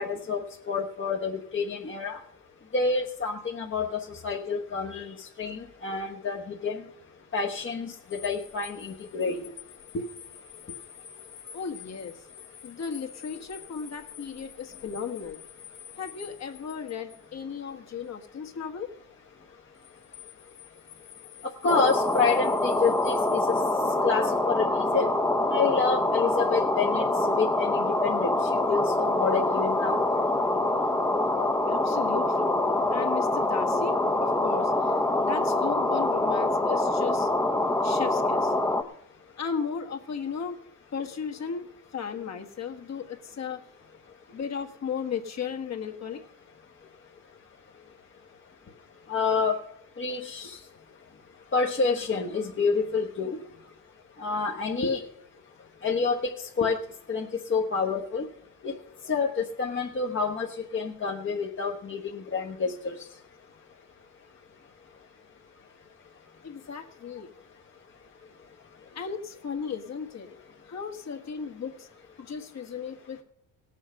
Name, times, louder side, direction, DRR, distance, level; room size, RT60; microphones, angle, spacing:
voice 1, 0.0-2.2 2.7-6.8 7.3-9.5 9.9-10.0 21.6-23.5 24.0-25.1 25.5-30.0 49.1-49.6 50.0-50.6 51.5-53.4 54.2-55.1 55.8-56.8 57.1-58.3 58.6-58.8 59.0-63.1, left 4 dB, 35° left, 0 dB, 1.2 m, -28 dB
sound 1, 8.0-17.3 19.7-23.7, left 10 dB, 70° left, 2.2 m, -48 dB
voice 2, 11.5-12.1 12.6-15.4 16.0-18.9 31.7-32.6 32.9-37.3 37.8-38.5 39.4-40.6 40.9-41.6 41.9-43.6 44.3-46.2 66.4-67.3 68.9-70.3 70.6-71.9 72.2-73.2, left 6 dB, 50° left, 4 dB, 1.7 m, -35 dB
sound 2, 21.7-38.8, left 2 dB, 10° left, 0.9 m, -25 dB
17.5 x 7.3 x 5.6 m, 0.78 s
cardioid pair, 100°, 34 cm